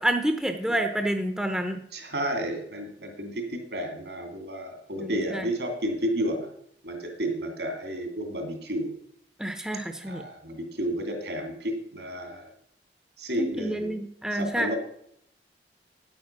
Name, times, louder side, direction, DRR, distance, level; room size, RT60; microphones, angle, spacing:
voice 1, 0.0-1.8 5.0-5.4 9.4-10.2 13.4-14.7, right 1 dB, 5° right, 6 dB, 0.7 m, -28 dB
voice 2, 1.9-6.5 6.8-9.0 10.0-12.5 13.2-13.9 14.3-14.8, equal, 70° right, 4 dB, 2.6 m, -31 dB
9.3 x 8.8 x 6.0 m, 0.68 s
head